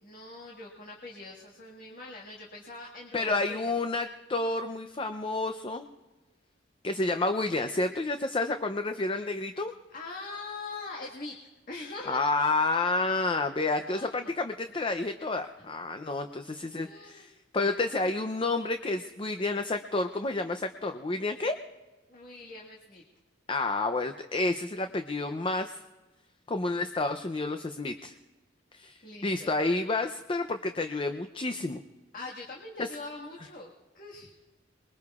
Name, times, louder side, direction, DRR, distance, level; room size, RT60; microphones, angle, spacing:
voice 1, 0.0-3.7 9.9-11.4 11.7-12.2 13.9-14.3 16.7-17.3 22.1-23.0 29.0-29.5 32.1-34.4, left 3 dB, 45° left, -2 dB, 1.7 m, -43 dB
voice 2, 3.1-5.9 6.8-9.7 12.1-21.6 23.5-25.8 26.5-28.1 28.7-31.8 32.8-32.9, left 2 dB, 25° left, 7 dB, 0.5 m, -30 dB
27.5 x 21.5 x 2.4 m, 1.2 s
head